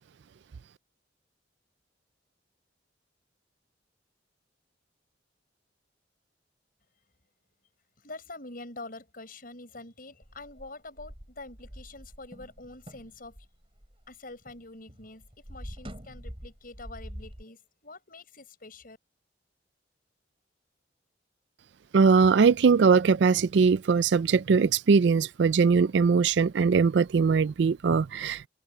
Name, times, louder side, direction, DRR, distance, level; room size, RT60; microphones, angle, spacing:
voice 1, 8.0-13.5 14.1-19.0, left 2 dB, 50° left, 7.0 m, -45 dB
sound 1, 10.2-14.6 14.9-17.4, equal, 30° right, 4.3 m, -45 dB
voice 2, 21.9-28.5, right 5 dB, 70° right, 0.4 m, -21 dB
open air
head